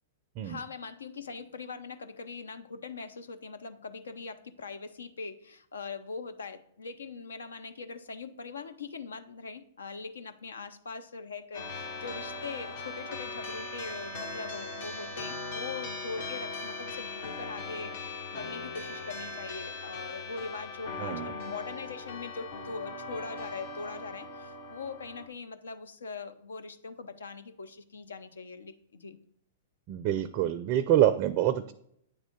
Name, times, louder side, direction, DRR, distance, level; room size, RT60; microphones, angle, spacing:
voice 1, 0.4-29.2, left 4 dB, 80° left, 9 dB, 0.6 m, -41 dB
sound 1, 11.5-25.3, left 3 dB, 60° left, 1.6 m, -39 dB
voice 2, 21.0-21.3 29.9-31.7, right 12 dB, 40° right, 12 dB, 0.4 m, -26 dB
8.9 x 3.6 x 3.6 m, 0.71 s
hypercardioid pair, 115°, 0 cm